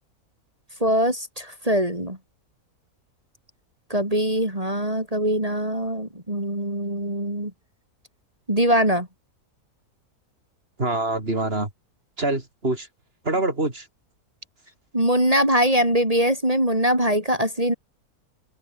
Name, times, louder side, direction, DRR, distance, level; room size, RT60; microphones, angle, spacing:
voice 1, 0.8-2.2 3.9-7.5 8.5-9.1 14.9-17.7, equal, 20° right, 6.4 m, -22 dB
voice 2, 10.8-11.7 12.2-12.9 13.2-13.9, right 2 dB, 40° right, 4.6 m, -25 dB
open air
omnidirectional pair, 1.6 m